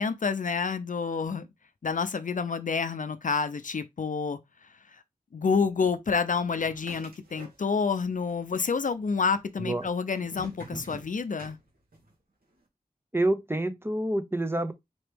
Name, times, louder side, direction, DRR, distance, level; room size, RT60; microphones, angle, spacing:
voice 1, 0.0-1.5 1.8-4.4 5.3-11.6, left 5 dB, 55° left, 0.5 m, -28 dB
sound 1, 6.6-8.0 8.3-9.0 9.7-12.1, right 1 dB, 65° right, 1.7 m, -46 dB
voice 2, 9.6-9.9 13.1-14.7, right 1 dB, 15° right, 0.7 m, -27 dB
4.3 x 3.0 x 3.3 m
wide cardioid pair, 55°, 16 cm